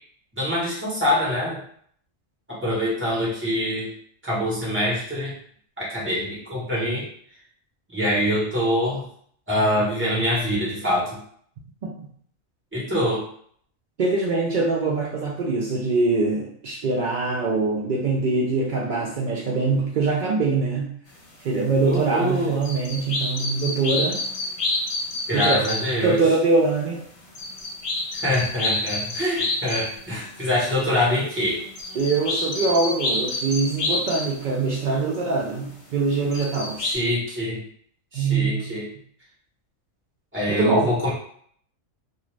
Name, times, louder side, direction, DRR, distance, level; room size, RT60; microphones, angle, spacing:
voice 1, 0.3-1.6 2.5-3.9 4.2-5.3 5.8-7.0 7.9-9.0 9.5-11.2 12.7-13.2 21.8-22.6 25.3-26.2 28.1-31.6 36.8-37.6 38.1-38.9 40.3-41.1, equal, 10° right, -8 dB, 1.0 m, -24 dB
voice 2, 14.0-20.9 21.4-24.2 25.3-25.6 26.0-27.0 31.9-36.8 38.1-38.7 40.5-40.9, right 3 dB, 70° right, -4 dB, 0.4 m, -23 dB
sound 1, 22.2-22.3 22.6-25.9 27.2-30.0 30.3-31.1 31.4-34.4 35.4-35.5 36.3-37.0, left 2 dB, 60° left, 0.9 m, -28 dB
2.4 x 2.4 x 3.1 m, 0.62 s
omnidirectional pair, 1.4 m